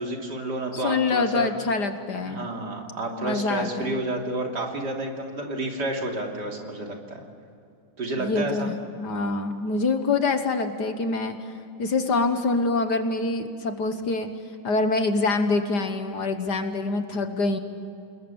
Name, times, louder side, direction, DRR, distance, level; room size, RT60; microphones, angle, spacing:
voice 1, 0.0-1.5 2.3-7.2 8.0-8.7 17.1-17.2, right 2 dB, 55° right, 1 dB, 3.5 m, -30 dB
voice 2, 0.7-2.5 3.2-4.0 8.2-11.4 11.8-14.3 14.6-17.6, left 3 dB, 55° left, 7 dB, 1.8 m, -25 dB
29.0 x 20.5 x 7.1 m, 2.6 s
omnidirectional pair, 2.3 m